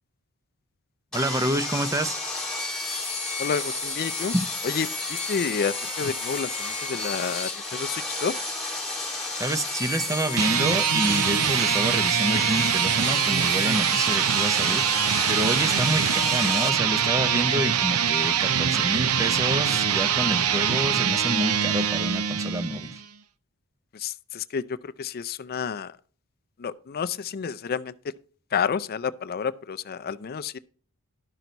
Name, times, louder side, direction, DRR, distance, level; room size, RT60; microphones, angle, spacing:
Sawing, 1.1-16.7, left 3 dB, ahead, 2.2 m, -31 dB
voice 1, 1.1-2.2 4.3-4.4 9.3-14.8 15.3-23.0, right 1 dB, 15° right, 0.7 m, -28 dB
voice 2, 3.4-4.3 4.6-8.3 23.9-26.0 26.6-27.9 28.5-30.6, left 6 dB, 45° left, 0.4 m, -30 dB
sound 1, 10.3-23.0, right 8 dB, 80° right, 0.7 m, -24 dB
11.5 x 6.0 x 4.0 m
head